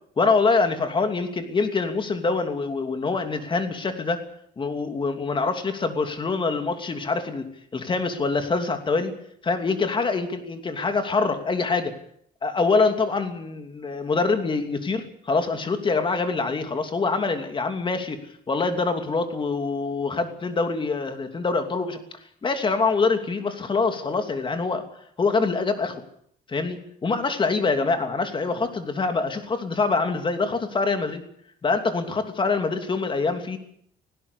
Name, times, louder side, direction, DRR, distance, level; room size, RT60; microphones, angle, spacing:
voice 1, 0.2-4.2 4.6-7.5 7.7-9.1 9.4-11.9 12.4-18.2 18.5-22.0 22.4-24.9 25.2-26.0 26.5-31.2 31.6-33.6, left 4 dB, 30° left, 7 dB, 2.9 m, -25 dB
19.0 x 16.5 x 8.3 m, 0.69 s
cardioid pair, 110°, 17 cm